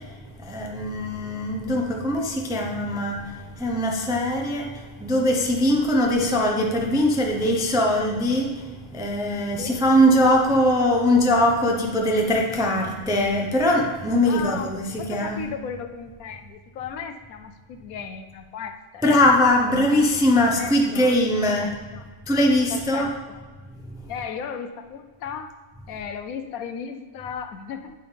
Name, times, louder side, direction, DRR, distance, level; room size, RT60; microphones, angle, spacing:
voice 1, 0.0-15.5 19.0-21.8 22.3-23.1 23.8-24.1, left 1 dB, 5° right, 0 dB, 0.4 m, -21 dB
voice 2, 14.2-14.7 15.0-19.2 20.6-21.2 21.6-22.1 22.7-23.5 24.1-25.5 25.9-27.9, left 7 dB, 75° left, 8 dB, 1.0 m, -35 dB
8.7 x 6.8 x 3.4 m, 1.4 s
omnidirectional pair, 1.6 m